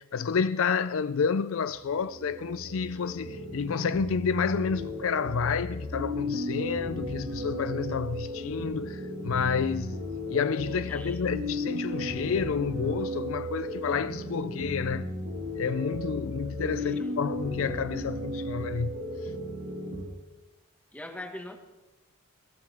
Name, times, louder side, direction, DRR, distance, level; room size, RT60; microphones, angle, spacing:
voice 1, 0.0-10.0 10.3-15.1 15.6-18.9, left 6 dB, 60° left, 0.4 m, -30 dB
sound 1, 1.7-20.0, equal, 60° right, 2.2 m, -35 dB
voice 2, 10.7-11.2 16.8-17.1 20.9-21.6, left 1 dB, 5° left, 1.6 m, -42 dB
22.0 x 15.0 x 3.5 m
head